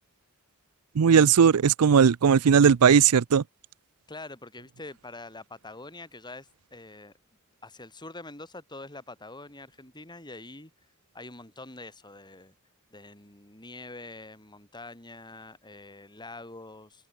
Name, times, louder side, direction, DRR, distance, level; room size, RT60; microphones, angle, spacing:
voice 1, 1.0-3.4, right 7 dB, 75° right, 0.5 m, -18 dB
voice 2, 4.1-7.1 7.6-10.7 11.1-12.5 12.9-17.1, left 2 dB, 20° left, 6.3 m, -45 dB
open air
head